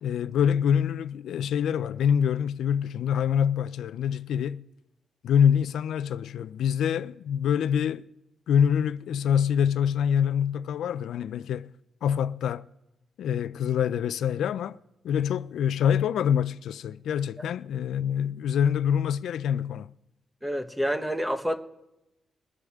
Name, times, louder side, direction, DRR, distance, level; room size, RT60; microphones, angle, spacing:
voice 1, 0.0-4.6 5.2-8.1 8.5-11.7 12.0-12.7 13.2-14.8 15.0-19.9, left 8 dB, 90° left, 0.4 m, -25 dB
voice 2, 20.4-21.6, equal, 5° right, 1.0 m, -28 dB
22.0 x 9.8 x 3.6 m
cardioid pair, 120°, 0 cm